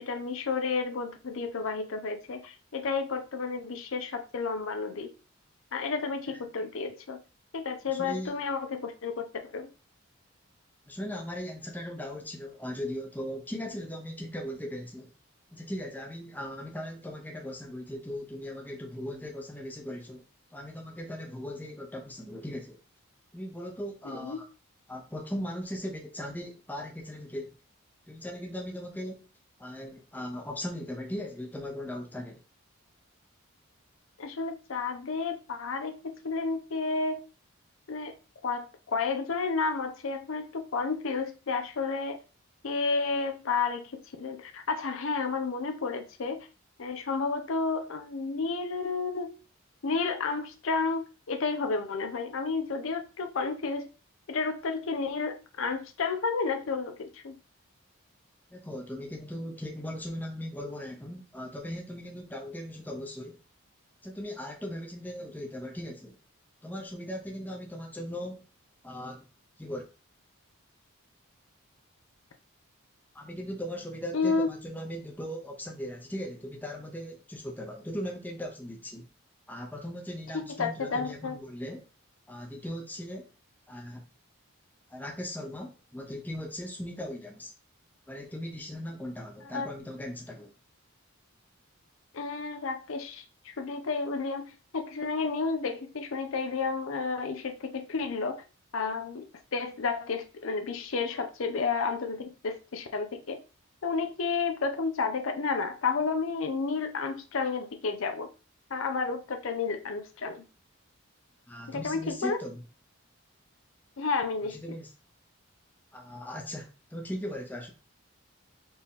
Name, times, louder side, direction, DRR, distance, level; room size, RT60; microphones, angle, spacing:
voice 1, 0.0-5.1 5.7-7.2 7.5-9.7 24.1-24.4 34.2-37.2 37.9-38.1 38.4-42.2 42.6-46.5 46.8-49.4 49.8-53.9 54.3-57.4 74.1-74.5 80.3-81.3 89.5-89.7 92.1-98.4 98.7-103.4 103.8-108.3 108.7-110.4 111.7-112.5 114.0-114.6, left 4 dB, 65° left, 0.5 m, -31 dB
voice 2, 7.9-8.3 10.9-15.1 15.5-20.2 20.5-22.8 23.3-24.5 24.9-27.5 28.1-29.3 29.6-32.4 58.5-63.4 64.0-66.2 66.6-68.4 68.8-69.2 69.6-69.8 73.1-79.1 79.5-81.9 82.3-83.3 83.7-84.0 84.9-87.5 88.1-90.5 111.5-112.6 114.5-114.9 115.9-117.7, equal, 10° left, 0.7 m, -38 dB
4.3 x 2.9 x 3.6 m
head